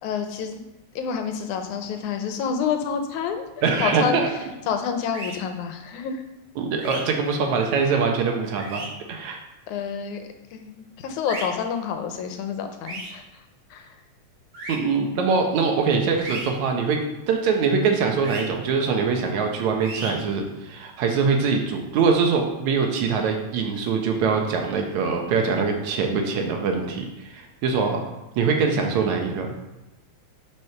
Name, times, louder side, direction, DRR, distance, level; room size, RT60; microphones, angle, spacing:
voice 1, 0.0-0.6 1.0-4.2 4.7-6.2 9.7-13.2 13.7-14.0, left 7 dB, 85° left, 6 dB, 2.3 m, -28 dB
voice 2, 3.6-4.3 6.6-9.4 14.7-17.0 17.3-28.0 28.4-29.5, right 5 dB, 75° right, 3 dB, 2.4 m, -23 dB
sound 1, 5.1-5.3 6.8-7.0 8.6-8.9 11.3-11.4 12.8-13.1 14.5-14.7 16.2-16.5 18.2-18.4 19.8-20.1, right 2 dB, 40° right, 2.7 m, -34 dB
6.3 x 6.1 x 5.8 m, 0.98 s
omnidirectional pair, 3.3 m